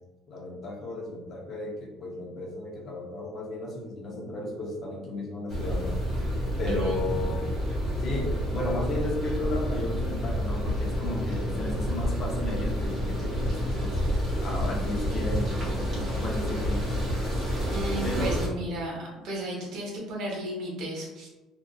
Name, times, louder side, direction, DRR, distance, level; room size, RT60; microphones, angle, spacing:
voice 1, 0.3-6.0 6.6-7.5 8.0-17.2 18.0-18.4, left 2 dB, 40° left, -1 dB, 0.7 m, -34 dB
sound 1, 5.5-18.5, equal, 35° right, 1.0 m, -29 dB
voice 2, 6.7-7.3 17.7-21.3, right 1 dB, 60° right, -3 dB, 0.9 m, -34 dB
2.7 x 2.4 x 2.3 m, 1.1 s
cardioid pair, 135°, 0 cm